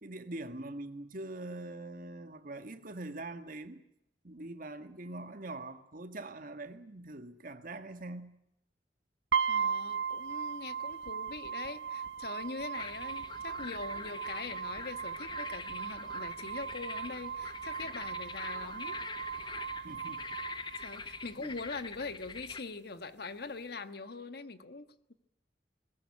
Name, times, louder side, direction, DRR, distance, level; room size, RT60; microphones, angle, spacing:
voice 1, 0.0-3.8 4.2-8.3 19.8-20.3 21.4-21.5, right 2 dB, 50° right, 1.7 m, -43 dB
sound 1, 9.3-21.3, right 7 dB, 85° right, 1.1 m, -37 dB
voice 2, 9.5-19.0 20.7-25.1, left 3 dB, 60° left, 1.4 m, -43 dB
sound 2, 12.7-22.6, left 4 dB, 25° left, 1.0 m, -45 dB
22.0 x 20.0 x 9.8 m
head